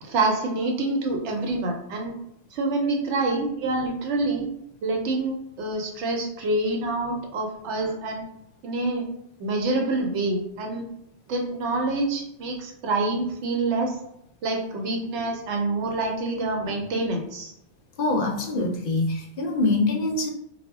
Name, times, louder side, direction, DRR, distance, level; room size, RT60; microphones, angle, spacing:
voice 1, 0.0-2.1 2.5-4.5 4.8-8.2 8.6-9.1 9.4-10.9 11.3-14.0 14.4-17.5, right 2 dB, 85° right, 2 dB, 0.9 m, -26 dB
voice 2, 18.0-20.3, left 2 dB, 60° left, 1 dB, 0.6 m, -24 dB
2.1 x 2.0 x 3.4 m, 0.77 s
omnidirectional pair, 1.2 m